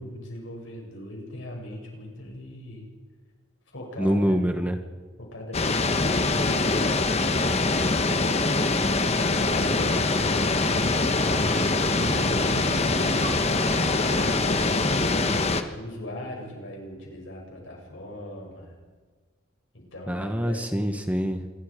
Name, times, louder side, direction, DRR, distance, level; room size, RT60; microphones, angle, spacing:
voice 1, 0.0-2.8 3.7-4.5 5.2-8.7 9.1-13.4 13.9-15.5 15.7-18.7 19.7-20.7, left 1 dB, 65° left, 0 dB, 7.5 m, -39 dB
voice 2, 4.0-4.8 20.1-21.4, equal, 5° right, 6 dB, 1.2 m, -25 dB
sound 1, 5.5-15.6, left 3 dB, 30° left, 1.3 m, -23 dB
sound 2, 9.3-15.0, right 2 dB, 65° right, 4.1 m, -38 dB
27.0 x 21.5 x 5.2 m, 1.4 s
head